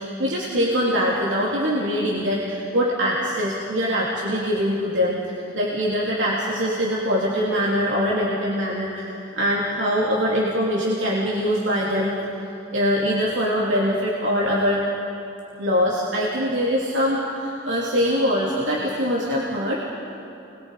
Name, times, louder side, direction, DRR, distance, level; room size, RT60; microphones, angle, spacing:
voice 1, 0.0-12.1 12.7-14.8 15.6-19.8, equal, 85° right, -5 dB, 3.0 m, -23 dB
30.0 x 22.0 x 5.0 m, 2.9 s
head